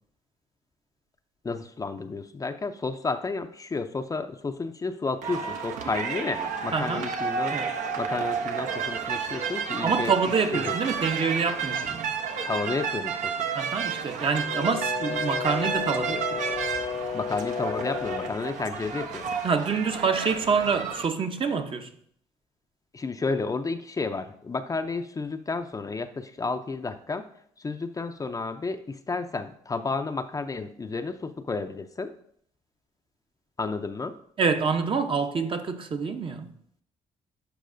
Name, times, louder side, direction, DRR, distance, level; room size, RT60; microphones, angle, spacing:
voice 1, 1.4-7.6 8.0-10.1 10.5-10.7 12.5-13.3 17.1-19.3 22.9-27.3 27.6-32.1 33.6-34.2, left 4 dB, 25° left, 0.5 m, -31 dB
sound 1, 5.2-21.1, right 6 dB, 75° right, 0.9 m, -31 dB
voice 2, 6.7-7.1 7.5-7.7 9.8-12.2 13.5-16.6 19.4-21.9 34.4-36.5, right 5 dB, 40° right, 0.8 m, -27 dB
Brass instrument, 14.2-18.4, left 7 dB, 60° left, 0.9 m, -33 dB
11.5 x 4.7 x 2.6 m
supercardioid pair, 65°, 13 cm